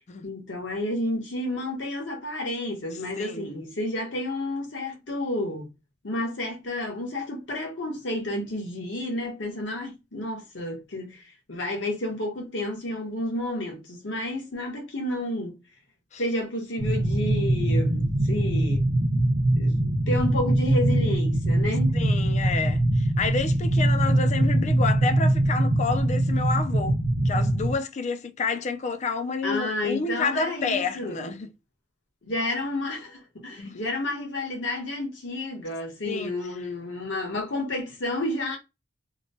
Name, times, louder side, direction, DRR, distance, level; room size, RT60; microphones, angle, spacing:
voice 1, 0.2-5.7 6.0-15.6 16.2-18.9 19.5-22.0 29.4-31.3 32.2-38.6, left 1 dB, 75° left, 1.1 m, -31 dB
voice 2, 3.2-3.5 16.1-16.2 21.9-31.5 33.6-33.8 36.1-36.4, left 4 dB, 40° left, 0.4 m, -29 dB
sound 1, 16.8-27.8, right 1 dB, 70° right, 0.7 m, -23 dB
2.9 x 2.2 x 2.6 m
head